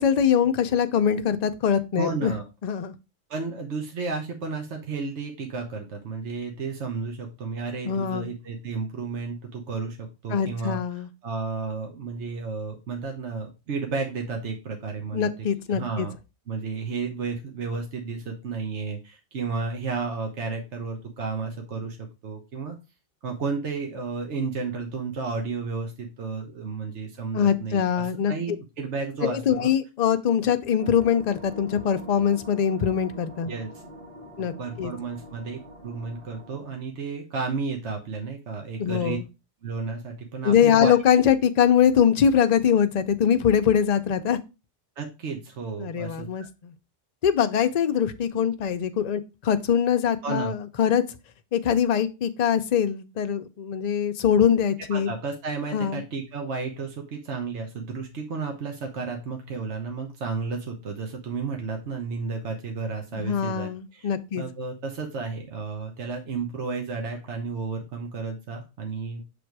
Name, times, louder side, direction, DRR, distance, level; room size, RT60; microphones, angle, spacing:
voice 1, 0.0-2.3 2.6-2.9 7.8-8.3 10.3-11.1 15.1-16.1 27.3-28.3 29.2-33.5 34.4-34.9 38.8-39.2 40.4-44.4 45.8-46.7 47.2-51.0 51.5-55.1 55.7-56.0 63.1-64.4, left 8 dB, 50° left, 0.5 m, -23 dB
voice 2, 2.0-2.4 3.3-10.8 11.2-15.3 15.7-16.1 16.5-22.0 22.2-22.7 23.2-29.7 33.5-33.7 34.6-39.2 39.6-40.9 45.0-46.3 50.2-50.5 54.9-64.1 64.4-69.2, right 4 dB, 70° right, 1.4 m, -32 dB
sound 1, 30.8-36.6, equal, 25° right, 1.4 m, -44 dB
6.2 x 3.4 x 4.6 m
omnidirectional pair, 1.2 m